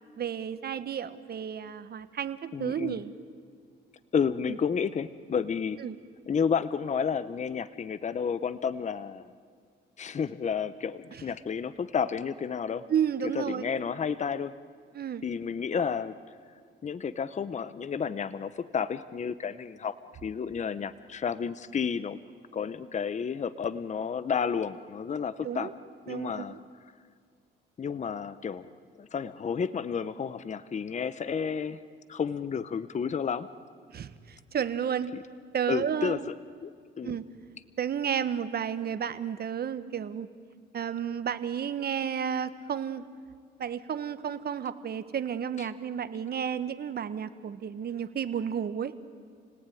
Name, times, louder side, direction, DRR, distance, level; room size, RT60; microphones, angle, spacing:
voice 1, 0.2-3.1 5.8-6.0 12.9-13.7 14.9-15.2 25.4-25.7 26.1-26.4 33.9-35.1 35.5-36.2 37.0-37.2 37.8-40.3 40.7-43.0 43.6-48.9, right 8 dB, 50° right, 12 dB, 1.3 m, -32 dB
voice 2, 2.5-3.0 4.1-5.8 6.3-9.3 10.0-12.9 13.3-14.5 15.2-16.1 16.8-20.0 20.2-22.2 22.5-25.7 26.1-26.6 27.8-28.7 29.0-31.8 32.1-33.5 35.1-35.2 35.7-36.3 36.6-36.7 37.0-37.2 45.6-45.7, left 6 dB, 35° left, 15 dB, 0.8 m, -31 dB
29.0 x 18.5 x 9.2 m, 2.2 s
cardioid pair, 90°, 20 cm